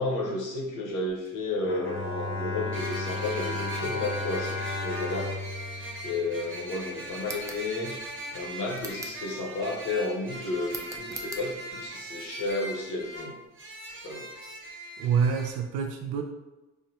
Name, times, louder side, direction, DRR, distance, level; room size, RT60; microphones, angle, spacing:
voice 1, 0.0-5.3 6.0-8.0 8.3-13.4 13.9-14.3, left 2 dB, 85° left, -1 dB, 1.0 m, -32 dB
sound 1, 1.1-1.2 2.7-15.5, right 1 dB, 40° right, 1.0 m, -40 dB
Bowed string instrument, 1.6-6.9, left 2 dB, 45° left, 0.6 m, -34 dB
sound 2, 7.2-7.7 8.7-9.2 10.7-11.5, right 2 dB, 10° right, 0.4 m, -41 dB
voice 2, 15.0-16.2, right 6 dB, 80° right, 3 dB, 0.5 m, -26 dB
4.7 x 2.1 x 2.8 m, 1.1 s
cardioid pair, 90°, 30 cm